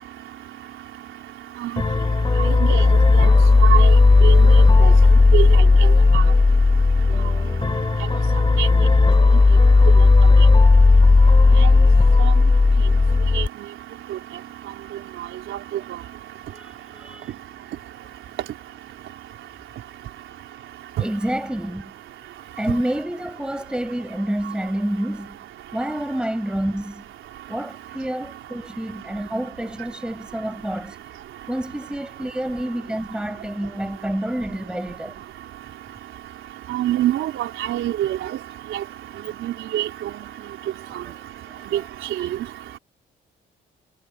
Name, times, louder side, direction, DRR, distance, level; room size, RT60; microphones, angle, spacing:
sound 1, 1.8-13.5, left 3 dB, 25° left, 3.7 m, -14 dB
voice 1, 2.4-2.8 3.2-3.3 3.6-3.9 4.2-4.6 4.8-4.9 5.3-5.5 6.1-6.2 8.6-8.7 11.6-11.7 13.3-13.4 36.7-38.1 38.7-38.8 39.4-39.9 41.7-41.8 42.2-42.3, right 12 dB, 80° right, 3.8 m, -24 dB
voice 2, 16.5-17.4 21.0-21.9 22.6-25.4 25.7-27.0 27.5-31.0 31.5-35.2 40.9-41.0 41.5-41.9, right 1 dB, 5° right, 6.7 m, -28 dB
cardioid pair, 90°, 20 cm